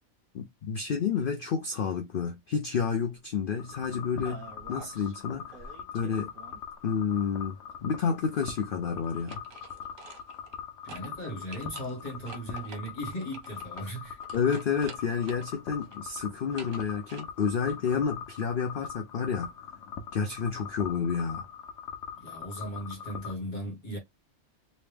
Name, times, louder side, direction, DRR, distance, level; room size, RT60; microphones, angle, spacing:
voice 1, 0.3-5.7 5.9-6.3 6.8-9.4 14.3-19.5 20.1-21.5, left 6 dB, 70° left, 0.5 m, -30 dB
sound 1, 3.6-23.3, left 7 dB, 90° left, 1.1 m, -42 dB
sound 2, 4.2-5.1 5.5-6.8 9.0-10.6 10.9-11.1 11.5-15.5 15.8-17.2, right 4 dB, 70° right, 1.3 m, -48 dB
voice 2, 10.8-14.2 22.2-24.0, equal, 35° left, 1.4 m, -37 dB
3.0 x 2.7 x 3.4 m
omnidirectional pair, 1.4 m